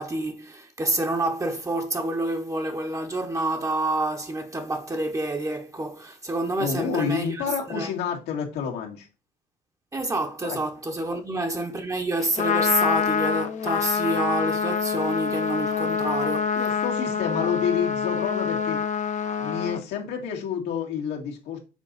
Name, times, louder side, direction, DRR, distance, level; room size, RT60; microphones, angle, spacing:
voice 1, 0.0-7.9 9.9-16.6 17.3-17.5, right 2 dB, 20° right, 0.9 m, -28 dB
voice 2, 6.6-9.1 10.4-10.6 11.1-11.2 16.5-18.8 19.4-21.6, left 7 dB, 85° left, 1.9 m, -29 dB
Trumpet, 12.2-19.8, left 6 dB, 45° left, 0.7 m, -26 dB
6.3 x 4.0 x 4.0 m
cardioid pair, 110°, 17 cm